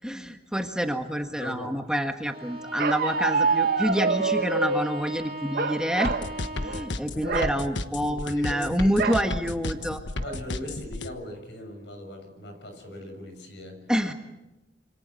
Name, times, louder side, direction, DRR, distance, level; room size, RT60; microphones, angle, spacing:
voice 1, 0.0-6.1 6.6-10.0 13.9-14.1, equal, 5° right, 5 dB, 1.6 m, -27 dB
voice 2, 1.4-1.7 7.2-7.7 8.0-9.0 10.2-13.8, left 1 dB, 70° left, 5 dB, 6.8 m, -39 dB
Bowed string instrument, 2.3-7.1, right 1 dB, 30° right, 2.6 m, -38 dB
Bark, 2.8-4.9 5.5-6.3 6.6-6.8 7.2-7.6 9.0-9.3 9.8-9.9 10.2-10.7, right 4 dB, 55° right, 1.2 m, -26 dB
sound 1, 6.0-11.1, left 2 dB, 90° left, 1.3 m, -32 dB
27.5 x 25.5 x 7.7 m, 1.0 s
head